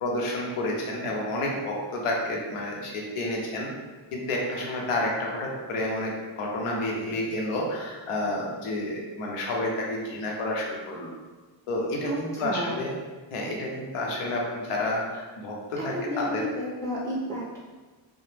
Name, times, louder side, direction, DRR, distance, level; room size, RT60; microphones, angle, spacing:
voice 1, 0.0-3.7 4.1-11.1 11.7-12.9 13.3-16.4, left 1 dB, 85° left, -1 dB, 0.7 m, -30 dB
voice 2, 12.1-12.8 15.8-17.6, equal, 5° left, -7 dB, 0.4 m, -32 dB
2.1 x 2.0 x 3.0 m, 1.3 s
cardioid pair, 100°, 50 cm